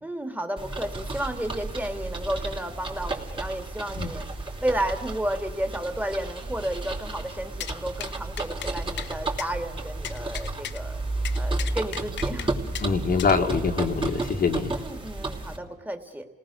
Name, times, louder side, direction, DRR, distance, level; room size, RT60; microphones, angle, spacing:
voice 1, 0.0-4.2 4.6-11.0 11.3-12.5 14.7-16.3, right 1 dB, 10° right, 6 dB, 2.8 m, -32 dB
sound 1, 0.6-15.6, right 2 dB, 25° right, 3.4 m, -32 dB
sound 2, 7.6-7.8 8.0-8.1 8.4-8.7 9.0-9.1 9.4-9.5 10.0-10.8 11.2-12.5 12.7-12.9 13.2-13.3, left 11 dB, 65° left, 0.7 m, -36 dB
voice 2, 12.8-14.7, left 5 dB, 50° left, 3 dB, 2.0 m, -24 dB
29.0 x 18.5 x 6.6 m, 1.2 s
cardioid pair, 90°, 20 cm